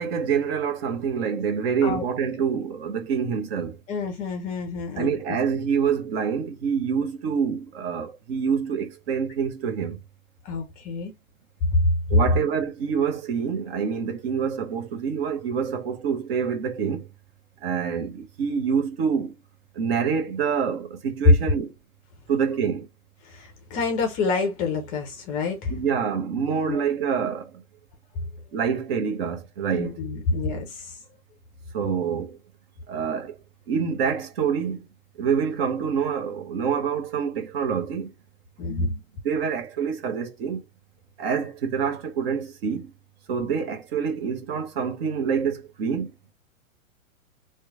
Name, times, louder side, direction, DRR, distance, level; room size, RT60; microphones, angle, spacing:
voice 1, 0.0-3.8 5.0-10.0 12.1-17.1 17.6-19.3 19.7-21.7 22.3-22.9 25.7-27.6 28.5-30.0 31.7-32.4 32.9-33.4 33.7-34.9 35.2-38.1 38.6-38.9 39.2-40.6 41.2-42.9 43.3-46.1, right 6 dB, 45° right, 0.8 m, -26 dB
voice 2, 3.9-5.1 10.4-11.1 11.7-11.9 23.2-25.8 26.7-26.8 29.7-31.0 38.6-38.9, left 3 dB, 20° left, 0.5 m, -27 dB
3.0 x 2.2 x 3.4 m
figure-of-eight pair, 115°, 42 cm